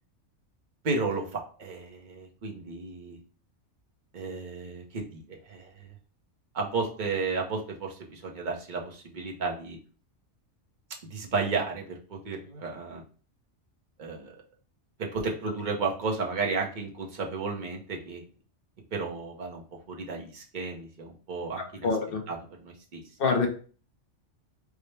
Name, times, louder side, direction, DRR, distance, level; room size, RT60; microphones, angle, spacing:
voice 1, 0.8-3.2 4.1-6.0 6.5-9.8 11.0-13.0 14.0-14.3 15.0-18.2 18.9-21.9 22.3-23.0, right 4 dB, 45° right, 0.8 m, -33 dB
voice 2, 21.8-22.2 23.2-23.5, left 4 dB, 55° left, 0.8 m, -25 dB
4.8 x 2.1 x 3.1 m
omnidirectional pair, 1.2 m